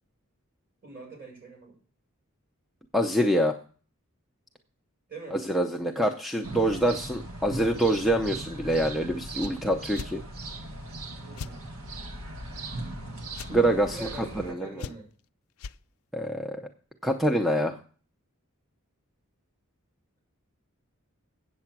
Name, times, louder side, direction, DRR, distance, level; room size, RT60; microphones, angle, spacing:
voice 1, 0.8-1.8 5.1-5.4 11.2-11.7 13.9-15.1, right 3 dB, 40° right, 0 dB, 6.0 m, -42 dB
voice 2, 2.9-3.6 5.3-10.2 13.5-14.0 14.5-14.7 16.1-16.6 17.0-17.8, right 1 dB, ahead, 3 dB, 0.6 m, -25 dB
sound 1, 6.4-14.5, right 2 dB, 70° right, 1.5 m, -38 dB
sound 2, 9.4-9.5 9.9-10.1 11.4-11.5 13.3-13.5 14.8-15.2 15.6-15.8, left 6 dB, 75° left, 0.4 m, -38 dB
8.4 x 7.7 x 5.9 m, 0.41 s
head